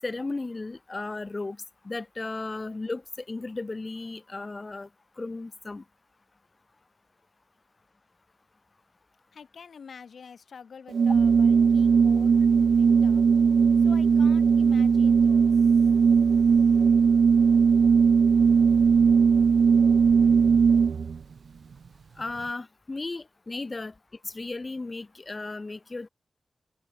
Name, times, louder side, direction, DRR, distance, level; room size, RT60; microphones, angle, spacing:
voice 1, 0.0-1.6 1.8-4.9 5.2-5.8 22.2-23.9 24.2-26.1, left 3 dB, 30° left, 5.6 m, -35 dB
voice 2, 9.3-13.3 13.8-15.5, left 6 dB, 75° left, 3.3 m, -47 dB
Organ, 10.9-21.2, right 6 dB, 75° right, 0.7 m, -19 dB
open air
wide cardioid pair, 140°, 0 cm